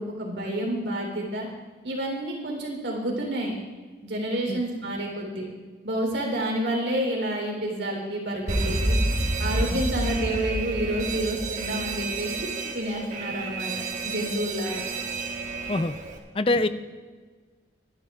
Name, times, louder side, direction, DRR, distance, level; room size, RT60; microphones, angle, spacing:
voice 1, 0.0-1.5 1.8-3.5 4.0-5.5 5.8-9.0 9.4-12.5 12.7-13.7 14.0-14.8 16.5-16.6, right 1 dB, 80° right, 0 dB, 3.5 m, -29 dB
Alarm, 8.5-16.2, right 2 dB, 45° right, 1.4 m, -29 dB
voice 2, 16.3-16.7, left 2 dB, 30° left, 11 dB, 0.4 m, -24 dB
24.0 x 11.5 x 2.4 m, 1.5 s
head